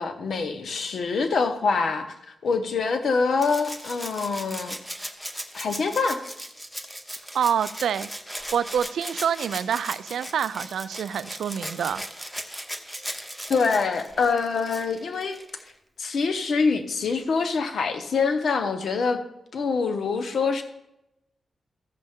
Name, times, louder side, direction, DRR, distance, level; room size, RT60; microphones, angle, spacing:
voice 1, 0.0-2.1 2.4-4.8 5.5-6.2 13.5-15.4 16.0-19.2 19.5-20.6, left 4 dB, 55° left, 8 dB, 0.9 m, -25 dB
Rattle (instrument), 3.4-15.7 17.1-17.2, equal, 5° left, 0.7 m, -38 dB
voice 2, 7.3-8.1 8.5-12.0, right 8 dB, 90° right, 15 dB, 0.4 m, -26 dB
14.0 x 6.5 x 3.6 m, 0.87 s
wide cardioid pair, 170°, 0 cm